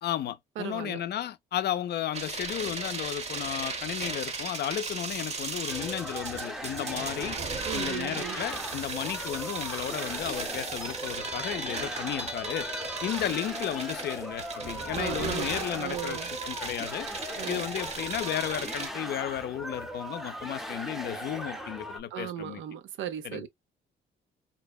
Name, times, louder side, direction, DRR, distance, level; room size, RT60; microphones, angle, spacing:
voice 1, 0.0-7.4 7.7-12.7 13.0-17.1 17.5-22.6 23.2-23.5, left 11 dB, 55° left, 0.4 m, -34 dB
voice 2, 0.6-1.0 7.6-8.4 14.9-15.5 15.7-16.3 17.4-17.7 22.1-23.5, right 10 dB, 80° right, 0.5 m, -36 dB
sound 1, 2.1-18.9, right 4 dB, 35° right, 0.7 m, -36 dB
sound 2, 5.7-22.0, equal, ahead, 0.5 m, -39 dB
2.7 x 2.1 x 2.3 m
cardioid pair, 90°, 20 cm